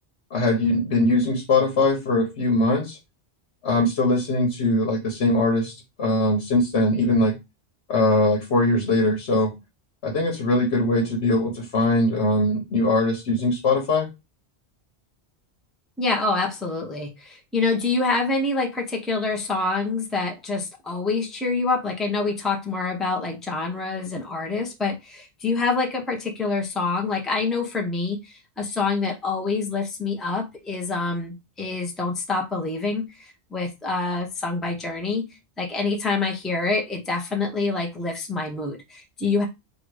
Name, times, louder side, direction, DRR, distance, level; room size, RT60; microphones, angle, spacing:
voice 1, 0.3-3.0 3.6-7.4 7.9-9.5 10.0-14.1, left 2 dB, 80° left, 1.3 m, -21 dB
voice 2, 16.0-35.3 35.6-39.4, left 3 dB, ahead, 0.8 m, -26 dB
3.9 x 2.6 x 4.7 m
omnidirectional pair, 1.1 m